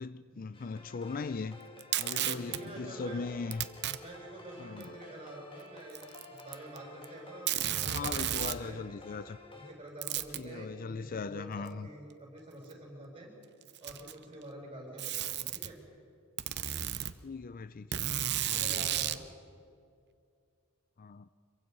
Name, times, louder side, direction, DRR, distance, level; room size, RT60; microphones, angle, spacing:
voice 1, 0.0-1.6 2.0-3.7 4.6-4.9 7.9-9.4 10.4-11.9 17.2-18.0 18.5-19.0 21.0-21.3, left 4 dB, 40° left, 0.5 m, -39 dB
sound 1, 0.5-9.7, left 2 dB, 25° left, 2.3 m, -51 dB
Packing tape duct tape, 1.8-2.6 3.5-4.0 4.8-4.9 5.9-6.8 7.0-7.1 7.5-8.6 10.0-10.4 11.7-11.8 12.7-12.8 13.6-14.2 15.0-15.7 16.4-17.1 17.9-19.2, right 11 dB, 50° right, 0.8 m, -33 dB
voice 2, 2.2-3.2 4.0-7.5 7.8-8.8 9.5-13.3 13.8-15.8 18.4-19.3, right 1 dB, 25° right, 7.1 m, -47 dB
26.0 x 23.0 x 5.5 m
head